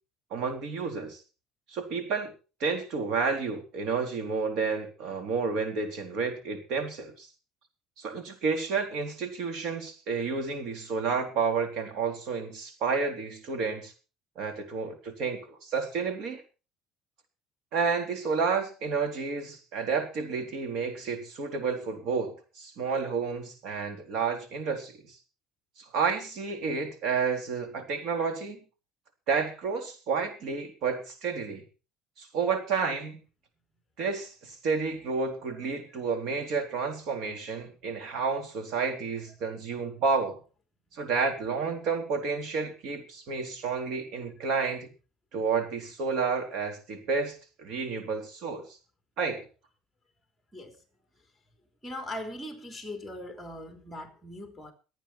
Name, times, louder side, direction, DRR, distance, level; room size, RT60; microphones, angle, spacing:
voice 1, 0.3-1.2 1.7-2.3 2.6-7.3 8.0-13.9 14.4-16.4 17.7-25.2 25.9-28.6 29.3-31.6 32.2-33.2 34.0-40.4 40.9-44.9 45.3-48.7 49.2-49.4, right 5 dB, 60° right, 3.8 m, -30 dB
voice 2, 51.8-54.7, left 1 dB, ahead, 3.3 m, -40 dB
23.5 x 9.0 x 4.4 m
cardioid pair, 155°, 0 cm